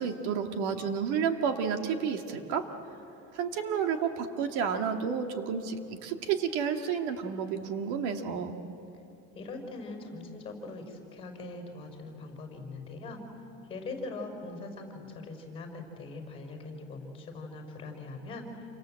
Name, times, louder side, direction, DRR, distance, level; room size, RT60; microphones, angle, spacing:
voice 1, 0.0-2.7 3.3-8.6, right 7 dB, 90° right, 5 dB, 2.2 m, -31 dB
voice 2, 9.3-13.2 13.7-18.7, left 3 dB, 20° left, 3 dB, 5.2 m, -41 dB
29.0 x 25.5 x 7.8 m, 3.0 s
cardioid pair, 170°, 33 cm